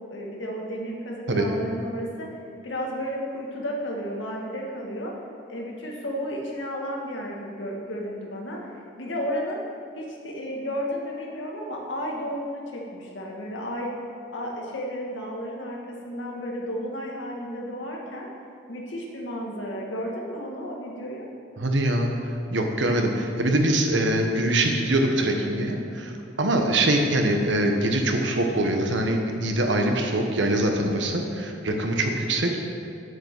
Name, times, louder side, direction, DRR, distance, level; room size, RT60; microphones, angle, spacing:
voice 1, 0.1-2.3 2.6-5.1 5.5-9.6 10.0-13.9 14.3-18.3 18.7-21.3, equal, 85° left, -2 dB, 1.8 m, -33 dB
voice 2, 21.6-22.1 22.5-32.7, right 1 dB, 75° right, 3 dB, 1.2 m, -23 dB
8.1 x 7.8 x 6.1 m, 2.6 s
head